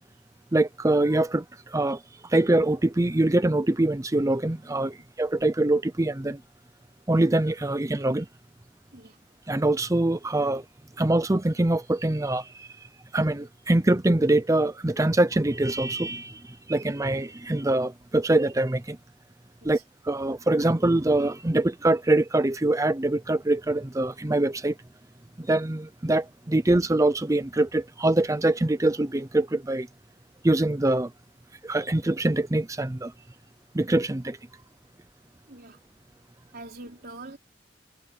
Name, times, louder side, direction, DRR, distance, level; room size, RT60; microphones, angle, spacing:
voice 1, 0.5-6.4 7.1-8.3 9.5-10.6 11.0-12.7 13.1-19.0 19.6-19.8 20.0-24.8 25.4-29.9 30.4-31.1 31.6-33.1 33.7-34.4, right 2 dB, 20° right, 0.6 m, -24 dB
voice 2, 35.5-35.8 36.5-37.4, right 2 dB, 55° right, 4.0 m, -44 dB
head